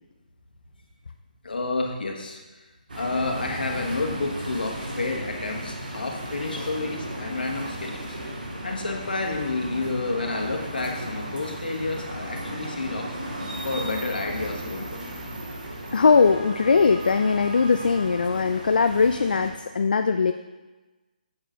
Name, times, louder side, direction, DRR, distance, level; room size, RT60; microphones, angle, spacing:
voice 1, 1.4-2.4 2.9-8.2 8.6-13.1 13.6-15.0, left 3 dB, 90° left, 1 dB, 1.5 m, -30 dB
sound 1, 2.9-19.5, right 1 dB, 80° right, 2.3 m, -35 dB
voice 2, 15.9-20.3, left 5 dB, 70° left, 8 dB, 0.4 m, -20 dB
6.9 x 6.6 x 3.9 m, 1.2 s
hypercardioid pair, 170°, 5 cm